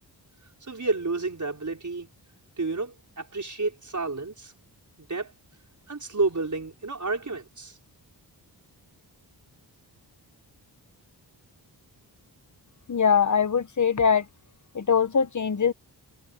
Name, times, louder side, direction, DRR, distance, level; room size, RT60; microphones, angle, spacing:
voice 1, 0.7-2.1 2.6-4.5 5.1-5.3 5.9-7.7, right 3 dB, 45° right, 4.9 m, -30 dB
voice 2, 12.9-14.2 14.7-15.7, left 6 dB, 45° left, 1.0 m, -22 dB
wide cardioid pair, 80°, 42 cm